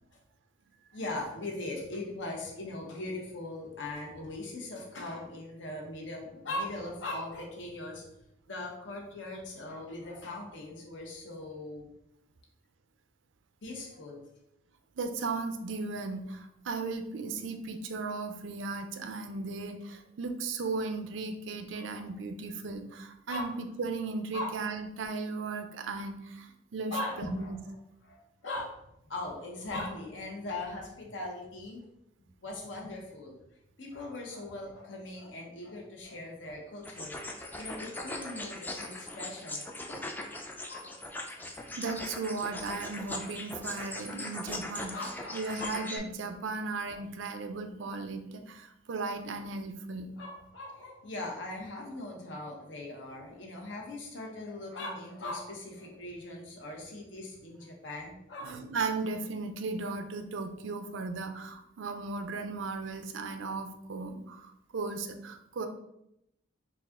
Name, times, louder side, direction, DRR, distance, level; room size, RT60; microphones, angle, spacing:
voice 1, 0.9-8.1 8.5-11.9 13.6-14.3 21.7-22.1 23.3-23.5 24.3-24.6 26.9-27.8 28.0-28.8 29.1-31.8 32.4-33.4 33.8-40.3 40.7-41.3 44.9-45.8 46.9-47.3 50.2-58.5, left 2 dB, 75° left, -1 dB, 1.0 m, -40 dB
voice 2, 15.0-27.6 41.8-50.1 58.4-65.7, right 3 dB, 90° right, 7 dB, 0.5 m, -36 dB
sound 1, 36.8-46.0, left 2 dB, 10° left, 0.3 m, -40 dB
4.1 x 2.4 x 3.6 m, 0.82 s
head